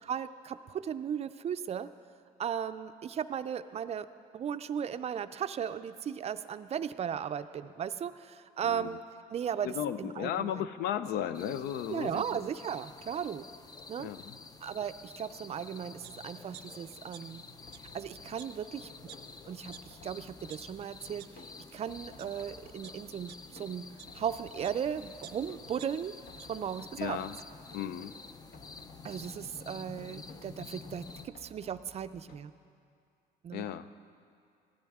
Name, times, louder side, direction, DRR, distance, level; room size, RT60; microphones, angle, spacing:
voice 1, 0.0-1.9 2.4-4.1 4.3-9.0 9.3-10.7 11.9-13.4 13.9-14.1 14.6-17.4 17.9-18.9 19.5-21.3 21.7-23.9 24.1-26.1 26.5-27.2 29.0-32.5 33.4-33.7, right 8 dB, 40° right, 12 dB, 0.4 m, -36 dB
voice 2, 9.6-12.2 14.0-14.4 27.0-27.4 27.7-28.1 33.5-33.9, left 10 dB, 75° left, 13 dB, 0.5 m, -35 dB
sound 1, 11.3-31.3, left 4 dB, 25° left, 0.5 m, -50 dB
sound 2, 16.0-16.1 16.5-17.4 17.7-17.8 18.4-18.5 19.1-19.2 19.7-19.8 20.3-20.6 21.2-21.3 22.0-22.3 22.8-24.8 25.2-26.5 26.9-27.0, right 15 dB, 90° right, 0.6 m, -51 dB
sound 3, 17.6-32.4, left 3 dB, 60° left, 1.2 m, -57 dB
16.5 x 13.5 x 3.6 m, 2.3 s
cardioid pair, 110°, 17 cm